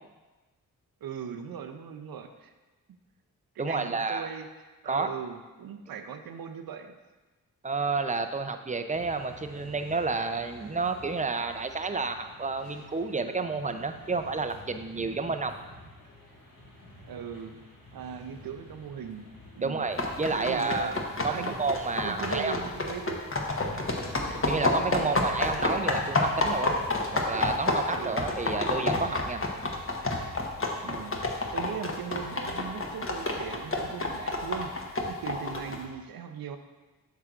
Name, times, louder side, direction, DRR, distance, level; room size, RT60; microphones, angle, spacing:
voice 1, 1.0-2.5 3.5-6.9 17.1-17.6 17.9-19.3 19.6-19.9 20.4-21.0 21.3-21.6 22.0-23.2 24.9-25.2 28.0-28.2 30.8-31.2 31.5-36.6, right 8 dB, 70° right, 7 dB, 0.7 m, -39 dB
voice 2, 3.6-4.3 4.9-5.1 7.6-15.5 19.6-20.9 21.2-22.5 24.5-26.8 27.1-29.7, right 4 dB, 20° right, 8 dB, 0.5 m, -30 dB
sound 1, 8.9-27.7, left 1 dB, 80° left, 1.9 m, -50 dB
sound 2, 20.0-35.8, left 2 dB, 35° left, 1.1 m, -29 dB
8.1 x 5.7 x 2.5 m, 1.2 s
cardioid pair, 45°, 37 cm